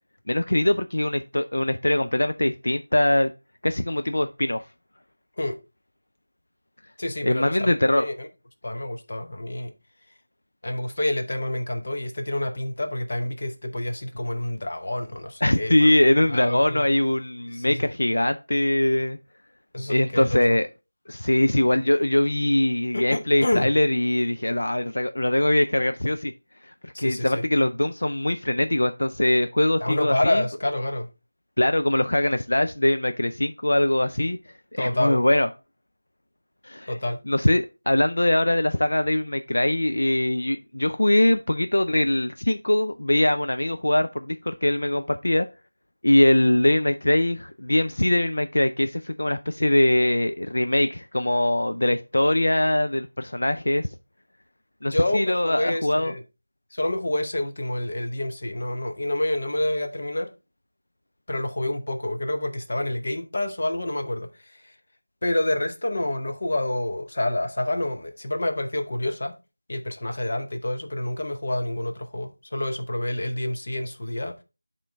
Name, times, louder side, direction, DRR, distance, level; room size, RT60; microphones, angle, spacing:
voice 1, 0.3-3.3 3.6-4.6 7.2-8.0 15.4-19.2 19.9-20.7 21.1-26.3 26.7-30.4 31.6-34.4 34.7-35.5 36.6-36.9 37.3-45.5 46.0-53.9 54.8-56.1, left 1 dB, 70° left, 0.4 m, -22 dB
voice 2, 7.0-8.3 8.6-9.7 10.6-15.9 16.3-16.9 17.5-17.9 19.7-20.6 22.9-23.7 26.9-27.4 29.8-31.1 34.8-35.2 36.9-37.2 54.9-56.2 56.7-60.3 61.3-64.7 65.2-69.4 69.7-74.4, left 1 dB, 35° left, 0.7 m, -28 dB
8.8 x 3.7 x 3.4 m
figure-of-eight pair, 180°, 0 cm